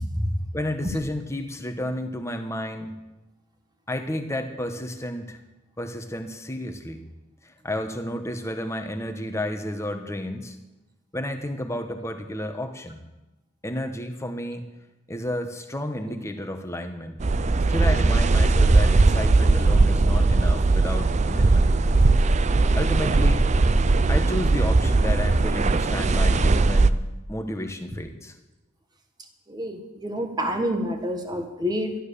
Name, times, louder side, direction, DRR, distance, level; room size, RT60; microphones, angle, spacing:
voice 1, 0.5-2.9 3.9-5.4 5.8-7.0 7.4-10.5 11.1-13.0 13.6-14.6 15.1-17.2 17.7-21.7 22.7-23.5 24.1-27.0 27.3-28.3, left 1 dB, 15° left, 6 dB, 1.2 m, -31 dB
sound 1, 17.2-26.9, right 3 dB, 35° right, 0.5 m, -19 dB
voice 2, 29.5-32.0, equal, 20° right, 5 dB, 1.6 m, -28 dB
12.0 x 12.0 x 6.8 m, 1.0 s
head